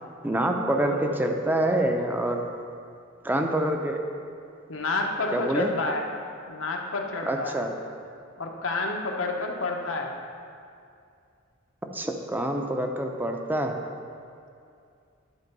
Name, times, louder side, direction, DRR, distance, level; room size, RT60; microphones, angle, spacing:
voice 1, 0.2-2.5 3.2-4.0 5.3-5.7 7.3-7.7 11.9-13.9, right 1 dB, 10° right, 3 dB, 0.5 m, -26 dB
voice 2, 4.7-6.0 6.5-7.6 8.4-10.1, left 3 dB, 80° left, 1 dB, 0.9 m, -29 dB
11.0 x 4.4 x 5.3 m, 2.4 s
head